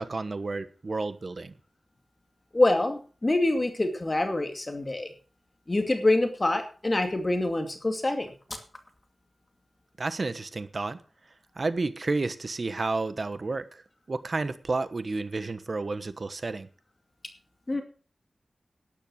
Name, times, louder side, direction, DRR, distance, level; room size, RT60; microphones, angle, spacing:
voice 1, 0.0-1.5 10.0-11.0 11.6-13.8 14.1-16.7, right 3 dB, 50° right, 1.3 m, -31 dB
voice 2, 2.5-5.1 5.7-8.3 17.7-17.8, left 2 dB, 30° left, 2.3 m, -25 dB
12.0 x 10.5 x 6.2 m
wide cardioid pair, 85°, 0 cm